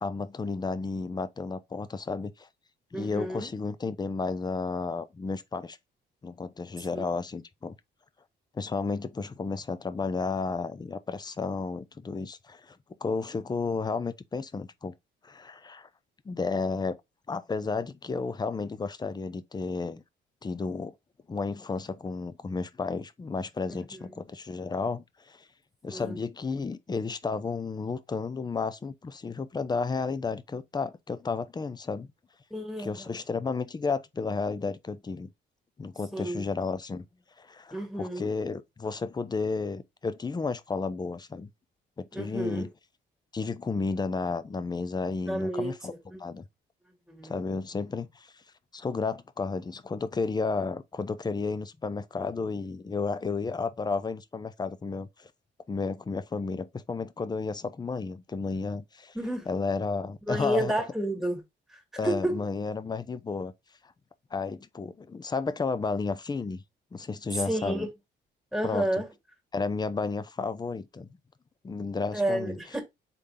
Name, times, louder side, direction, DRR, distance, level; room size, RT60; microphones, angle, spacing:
voice 1, 0.0-2.5 2.9-5.8 6.2-7.8 8.5-14.9 15.2-15.9 16.3-17.0 17.3-20.0 20.4-20.9 21.3-25.5 25.8-32.1 32.8-35.3 35.8-37.1 37.4-41.5 42.0-42.7 43.3-45.9 46.2-46.4 47.2-48.3 48.7-55.3 55.7-59.2 59.5-60.7 62.0-63.5 64.3-66.6 66.9-67.9 68.6-68.9 69.5-71.1 71.6-72.6, left 4 dB, 20° left, 0.5 m, -32 dB
voice 2, 2.9-3.5 6.8-7.0 23.7-24.2 25.9-26.2 32.5-33.1 36.1-36.5 37.7-38.3 42.1-42.7 45.3-46.2 47.1-47.4 59.1-59.5 60.3-61.4 61.7-62.4 67.3-67.9 68.5-69.1 72.1-72.8, right 1 dB, ahead, 1.9 m, -31 dB
4.3 x 3.5 x 3.4 m
cardioid pair, 90°, 20 cm